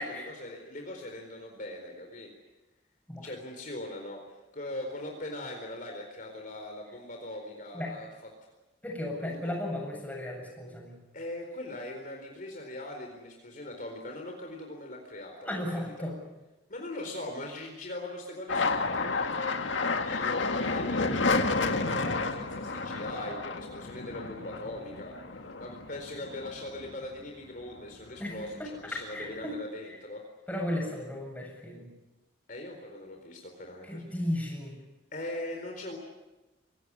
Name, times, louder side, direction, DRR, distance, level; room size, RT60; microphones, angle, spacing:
voice 1, 0.0-2.3 3.2-4.2 4.5-8.1 8.4-8.5 9.2-9.5 11.1-16.1 16.7-30.2 32.5-34.1 35.1-36.0, left 1 dB, 45° left, 2 dB, 4.2 m, -41 dB
voice 2, 8.8-11.0 15.4-16.2 28.2-29.5 30.5-31.9 33.9-34.7, left 1 dB, 10° left, 0 dB, 7.8 m, -35 dB
sound 1, 18.5-27.2 27.6-28.4 28.6-29.6, left 3 dB, 80° left, 1.9 m, -31 dB
25.0 x 18.0 x 9.9 m, 1.1 s
head